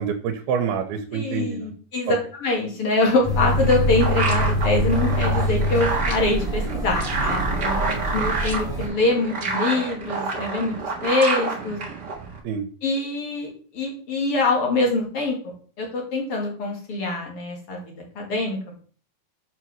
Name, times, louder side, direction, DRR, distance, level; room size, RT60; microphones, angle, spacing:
voice 1, 0.0-1.7 2.1-2.2 7.7-8.2 12.4-12.7, right 7 dB, 90° right, 5 dB, 2.8 m, -27 dB
voice 2, 1.1-7.8 8.1-10.8 11.0-11.8 12.8-18.6, left 2 dB, 45° left, 0 dB, 2.3 m, -24 dB
sound 1, 3.1-12.4, right 3 dB, 70° right, 0.9 m, -29 dB
sound 2, 3.2-8.9, equal, ahead, 1.3 m, -24 dB
6.8 x 4.7 x 6.3 m, 0.44 s
omnidirectional pair, 4.4 m